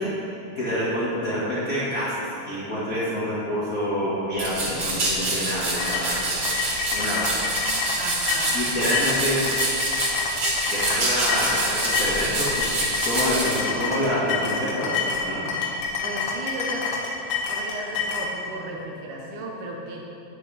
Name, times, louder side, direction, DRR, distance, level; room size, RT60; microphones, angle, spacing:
voice 1, 0.0-6.4 6.9-7.5 8.5-9.5 10.7-14.9 15.2-15.4, equal, 90° left, -11 dB, 0.7 m, -27 dB
sound 1, 4.4-13.6, right 2 dB, 40° right, 1.9 m, -26 dB
sound 2, 5.8-18.3, left 5 dB, 70° left, 2.7 m, -28 dB
voice 2, 8.0-8.6 16.0-16.9 17.5-20.0, right 2 dB, 80° right, -1 dB, 1.7 m, -34 dB
10.5 x 9.5 x 3.4 m, 2.7 s
omnidirectional pair, 4.8 m